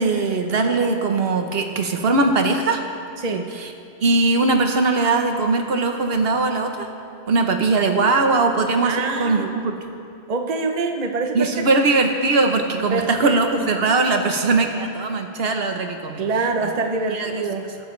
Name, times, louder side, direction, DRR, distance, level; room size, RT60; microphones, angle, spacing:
voice 1, 0.0-2.8 3.5-3.7 4.0-6.9 7.3-9.7 11.3-16.2 17.1-17.3, right 3 dB, 65° right, 5 dB, 1.1 m, -20 dB
voice 2, 8.8-9.5 10.3-11.5 11.7-11.8 12.9-13.7 16.2-17.7, right 4 dB, 45° right, 4 dB, 0.8 m, -25 dB
21.0 x 9.5 x 3.2 m, 2.5 s
omnidirectional pair, 1.1 m